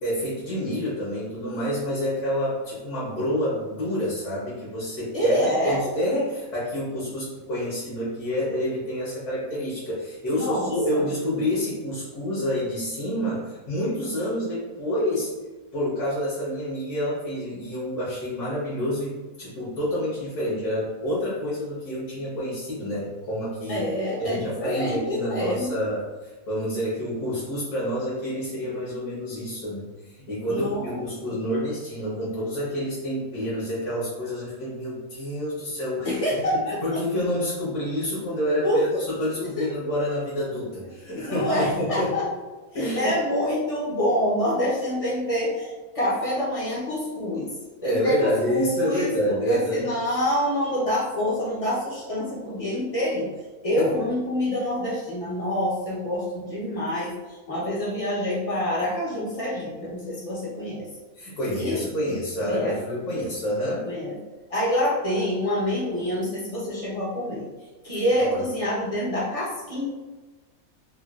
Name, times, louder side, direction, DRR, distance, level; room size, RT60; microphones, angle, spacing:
voice 1, 0.0-15.3 15.7-23.8 24.2-26.1 26.5-36.2 36.7-42.2 42.7-43.2 47.8-49.9 53.8-53.9 61.2-63.9 67.9-68.4, equal, 75° left, -8 dB, 1.4 m, -28 dB
voice 2, 5.1-5.8 10.3-11.0 23.7-25.7 30.5-31.0 31.3-31.4 36.0-36.8 38.6-38.9 39.6-39.7 41.1-42.3 42.7-47.5 47.8-49.1 49.4-53.3 53.6-57.1 57.5-60.9 61.6-61.8 62.4-62.7 63.8-64.2 64.5-67.5 67.8-69.9, equal, 40° left, -7 dB, 0.5 m, -26 dB
3.6 x 2.2 x 2.3 m, 1.2 s
omnidirectional pair, 1.7 m